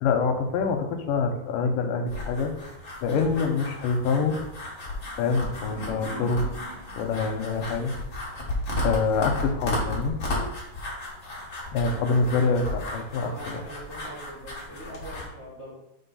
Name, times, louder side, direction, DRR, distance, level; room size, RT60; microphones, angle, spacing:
voice 1, 0.0-2.5 3.0-4.4 5.2-6.4 6.9-7.9 8.8-10.1 11.7-13.6, left 4 dB, 90° left, 5 dB, 2.3 m, -25 dB
sound 1, 2.1-15.3, left 1 dB, 75° left, 0.7 m, -34 dB
sound 2, 5.0-8.0, left 1 dB, 30° right, 1.8 m, -42 dB
voice 2, 11.8-12.6 13.2-15.8, right 1 dB, 65° right, -7 dB, 0.6 m, -42 dB
4.5 x 4.2 x 5.4 m, 0.88 s
omnidirectional pair, 3.9 m